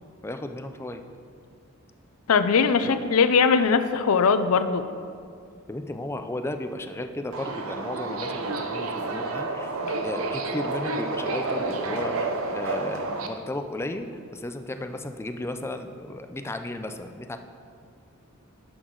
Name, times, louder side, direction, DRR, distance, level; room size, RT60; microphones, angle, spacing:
voice 1, 0.2-1.0 2.8-3.0 5.7-9.7 10.0-17.4, left 1 dB, 10° left, 7 dB, 0.4 m, -34 dB
voice 2, 2.3-4.9, left 5 dB, 85° left, 11 dB, 0.5 m, -20 dB
Subway metro underground, 7.3-13.3, right 3 dB, 75° right, 0.7 m, -30 dB
10.5 x 6.2 x 3.8 m, 2.3 s
head